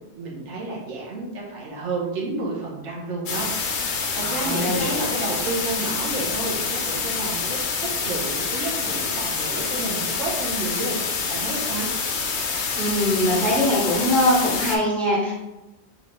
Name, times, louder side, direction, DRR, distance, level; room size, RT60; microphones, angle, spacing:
voice 1, 0.2-7.6 8.0-11.0 11.3-11.9, right 3 dB, 85° right, -3 dB, 1.2 m, -31 dB
sound 1, 3.3-14.8, left 5 dB, 55° left, 0.7 m, -27 dB
voice 2, 4.2-5.0 12.8-15.3, left 1 dB, ahead, -7 dB, 1.3 m, -22 dB
4.0 x 3.4 x 3.2 m, 1.0 s
omnidirectional pair, 1.2 m